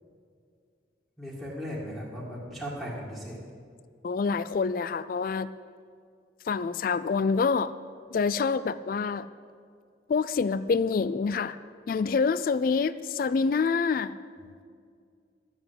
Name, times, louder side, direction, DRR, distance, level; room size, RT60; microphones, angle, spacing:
voice 1, 1.2-3.4 14.4-14.5, equal, 5° left, -9 dB, 2.1 m, -37 dB
voice 2, 4.0-5.5 6.5-7.7 8.1-9.3 10.1-11.6 11.9-14.2, left 5 dB, 50° left, 15 dB, 0.3 m, -26 dB
13.0 x 8.1 x 8.1 m, 2.2 s
head